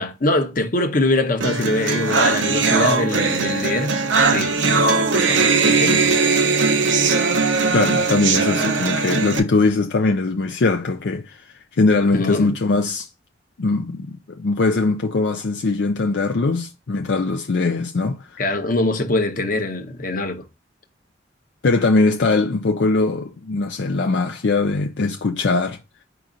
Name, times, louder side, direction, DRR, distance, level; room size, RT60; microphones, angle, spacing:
voice 1, 0.0-4.0 4.3-6.1 12.1-12.5 18.4-20.4, left 2 dB, 45° left, 0.9 m, -23 dB
sound 1, 1.4-9.4, right 4 dB, 85° right, 0.8 m, -19 dB
voice 2, 7.7-13.1 13.6-18.4 21.6-25.8, left 3 dB, 65° left, 0.5 m, -21 dB
4.9 x 2.9 x 3.8 m
head